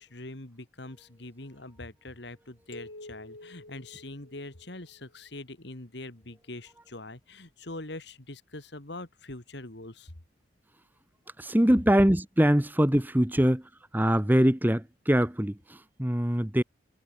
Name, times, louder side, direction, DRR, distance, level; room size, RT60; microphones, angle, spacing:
voice 1, 0.0-10.1, left 2 dB, 60° left, 2.3 m, -43 dB
sound 1, 2.7-5.1, left 2 dB, 85° left, 5.6 m, -48 dB
voice 2, 11.4-16.6, equal, 10° right, 1.0 m, -23 dB
head